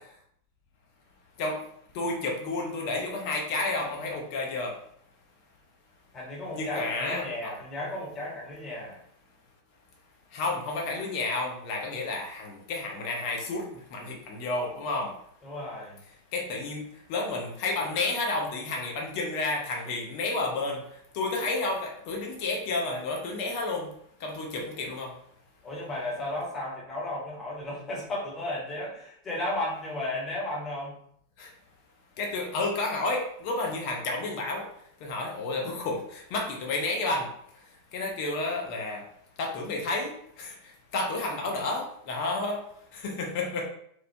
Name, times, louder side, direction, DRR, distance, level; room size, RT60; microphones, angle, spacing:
voice 1, 1.9-4.7 6.5-7.5 10.3-15.1 16.3-16.8 17.1-20.8 21.1-23.9 24.2-25.1 31.4-31.5 32.2-34.6 35.0-37.3 37.9-39.0 39.4-40.6 40.9-42.6 42.9-43.6, left 2 dB, 45° left, 0 dB, 0.6 m, -31 dB
voice 2, 6.1-9.0 15.4-16.0 25.6-31.0, left 1 dB, 25° left, -4 dB, 0.9 m, -34 dB
3.0 x 2.0 x 2.2 m, 0.68 s
figure-of-eight pair, 90°, 0 cm